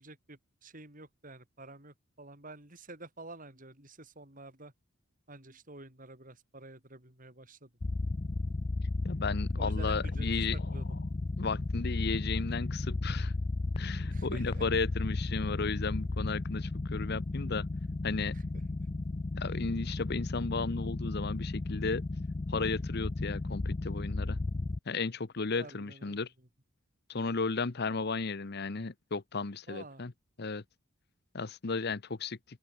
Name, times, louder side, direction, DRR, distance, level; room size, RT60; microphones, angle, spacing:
voice 1, 0.0-4.7 5.3-7.7 9.6-10.3 10.5-10.9 14.1-14.7 18.3-18.4 25.6-26.3 29.7-30.0, right 2 dB, 40° right, 6.9 m, -49 dB
sound 1, 7.8-24.8, left 2 dB, 25° left, 0.4 m, -34 dB
voice 2, 9.0-10.8 11.4-13.3 13.8-17.7 18.0-18.3 19.4-22.0 22.5-24.4 24.9-26.3 27.1-30.1 30.4-30.6 31.3-32.4, left 4 dB, 50° left, 0.9 m, -34 dB
open air
head